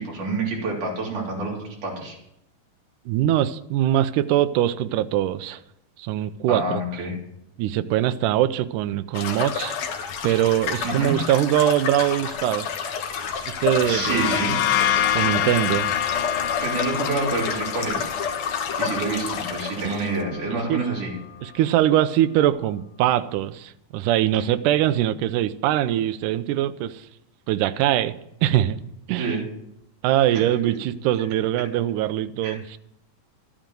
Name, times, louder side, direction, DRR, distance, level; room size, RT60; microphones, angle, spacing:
voice 1, 0.0-2.2 6.5-7.1 10.8-11.2 13.8-14.6 16.6-18.1 18.8-21.1 29.2-29.4 30.3-30.4 32.4-32.6, right 3 dB, 60° right, 4.9 m, -27 dB
voice 2, 3.1-5.6 6.0-6.8 7.6-9.8 10.2-12.9 13.5-14.4 15.1-15.9 19.8-20.1 20.7-20.8 21.4-27.1 27.5-28.1 28.4-28.8 29.1-29.4 30.0-32.8, right 12 dB, 80° right, 2.0 m, -22 dB
sound 1, 9.1-20.2, left 6 dB, 60° left, 2.1 m, -30 dB
sound 2, 13.5-21.1, left 10 dB, 85° left, 2.4 m, -27 dB
13.0 x 8.9 x 7.6 m
omnidirectional pair, 4.1 m